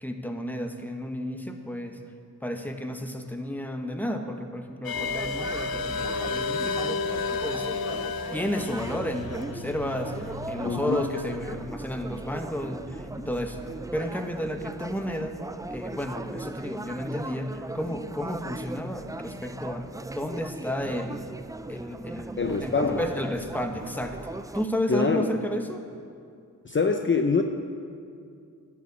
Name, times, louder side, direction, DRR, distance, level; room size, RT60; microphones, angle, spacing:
voice 1, 0.0-2.0 2.4-7.1 7.4-7.7 8.3-13.6 13.9-15.4 15.7-21.3 21.7-24.2 24.5-25.8, equal, 5° left, 4 dB, 1.3 m, -32 dB
sound 1, 4.8-11.7, left 4 dB, 90° left, 0.6 m, -32 dB
sound 2, 4.9-24.7, right 2 dB, 10° right, 0.3 m, -39 dB
voice 2, 10.6-11.0 22.4-23.0 24.9-25.3 26.6-27.4, left 4 dB, 35° left, 4 dB, 0.8 m, -24 dB
11.5 x 7.2 x 8.5 m, 2.4 s
cardioid pair, 50°, 35 cm